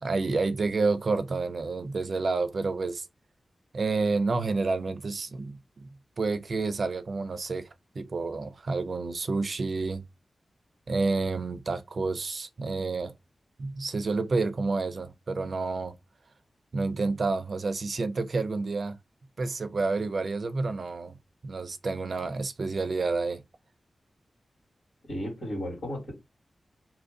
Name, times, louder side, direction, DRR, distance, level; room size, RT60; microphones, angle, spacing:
voice 1, 0.0-3.1 3.7-7.7 8.0-10.0 10.9-13.1 13.6-15.9 16.7-19.0 19.4-21.1 21.4-23.4, right 3 dB, 55° right, 0.5 m, -29 dB
voice 2, 25.1-26.1, equal, 85° left, 2.0 m, -34 dB
2.9 x 2.6 x 3.8 m
wide cardioid pair, 115°, 0 cm